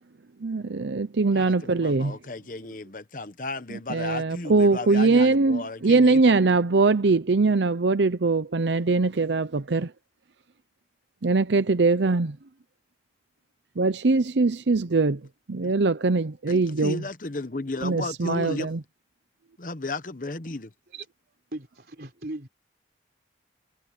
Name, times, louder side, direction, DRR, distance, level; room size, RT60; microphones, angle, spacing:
voice 1, 0.4-2.1 3.9-9.9 11.2-12.4 13.8-15.2 15.5-17.0 17.8-18.8, right 3 dB, 85° right, 0.7 m, -22 dB
voice 2, 1.3-6.2 15.6-15.7 16.5-18.7 19.6-20.7, left 2 dB, 50° left, 1.0 m, -34 dB
voice 3, 21.5-22.5, right 2 dB, 60° right, 3.8 m, -37 dB
head